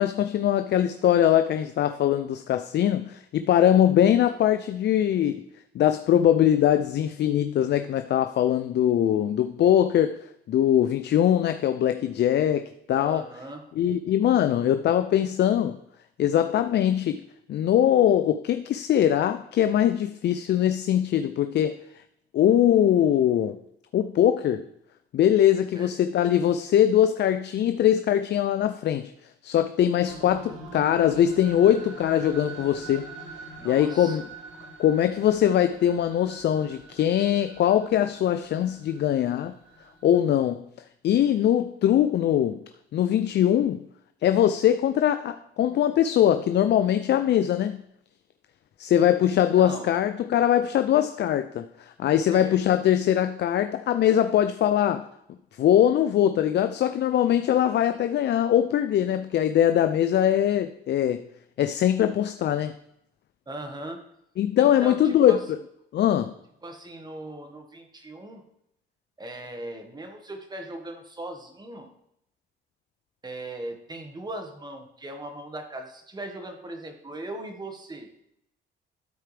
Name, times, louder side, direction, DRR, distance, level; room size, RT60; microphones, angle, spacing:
voice 1, 0.0-5.4 5.7-10.2 10.5-13.2 13.8-15.8 16.2-17.2 17.5-21.8 22.3-23.6 23.9-24.7 25.1-29.1 29.4-33.1 33.6-34.2 34.8-39.5 40.0-40.6 41.0-42.6 42.9-43.8 44.2-47.8 48.8-55.1 55.6-61.2 61.6-62.7 64.4-65.6 65.9-66.3, left 10 dB, 60° left, 9 dB, 0.5 m, -22 dB
voice 2, 13.0-13.6 25.7-25.9 33.6-34.2 49.2-50.0 52.3-52.6 63.5-64.0 64.6-65.4 66.6-68.4 69.2-71.9 73.2-78.1, right 1 dB, 20° right, 4 dB, 1.5 m, -39 dB
sound 1, 30.1-40.2, right 3 dB, 80° right, 1.8 m, -44 dB
12.5 x 4.5 x 3.4 m, 0.76 s
cardioid pair, 90°, 20 cm